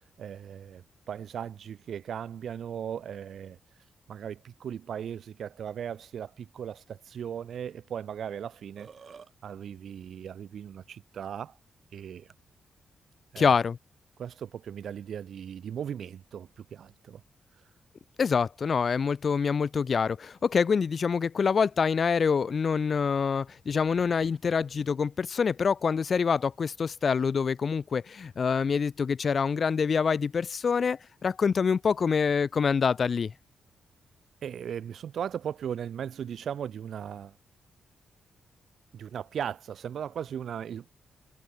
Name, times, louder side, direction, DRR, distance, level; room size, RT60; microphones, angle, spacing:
voice 1, 0.2-3.6 4.1-8.9 9.4-11.6 11.9-12.3 13.3-13.6 14.2-17.2 34.4-37.4 38.9-40.9, right 8 dB, 65° right, 2.4 m, -37 dB
Burping eructation, 8.5-9.3, right 6 dB, 40° right, 1.5 m, -49 dB
voice 2, 13.4-13.8 18.2-33.3, left 6 dB, 40° left, 0.3 m, -26 dB
wide cardioid pair, 160°, 0 cm